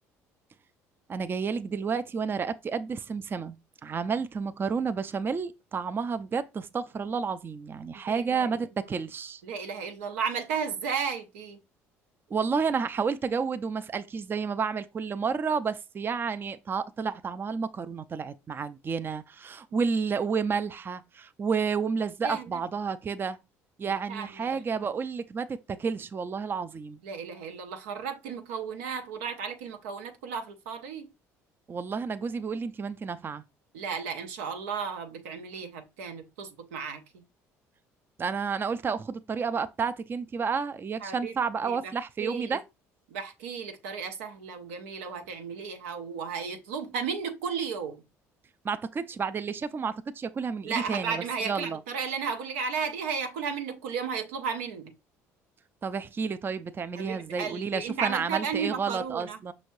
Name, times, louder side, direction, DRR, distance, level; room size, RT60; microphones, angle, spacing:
voice 1, 1.1-3.6 3.8-9.4 12.3-23.4 23.8-27.0 31.7-33.4 38.2-42.6 48.6-51.8 55.8-59.5, right 5 dB, 30° right, 0.4 m, -31 dB
voice 2, 8.1-8.6 9.4-11.6 22.2-22.6 23.8-24.9 27.0-31.1 33.7-37.2 41.0-41.3 41.6-41.9 42.2-42.6 43.1-48.0 50.6-54.9 56.9-59.4, right 6 dB, 85° right, 0.6 m, -34 dB
5.7 x 3.1 x 2.6 m
hypercardioid pair, 70°, 7 cm